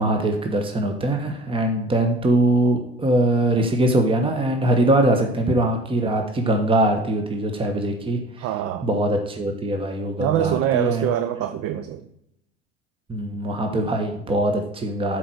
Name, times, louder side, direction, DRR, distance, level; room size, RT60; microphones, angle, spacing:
voice 1, 0.0-8.5 8.8-11.1 13.1-15.2, right 1 dB, 15° right, 4 dB, 1.2 m, -22 dB
voice 2, 8.4-8.9 10.2-12.0, right 12 dB, 50° right, 10 dB, 0.6 m, -24 dB
7.8 x 4.7 x 6.1 m, 0.79 s
hypercardioid pair, 75°, 30 cm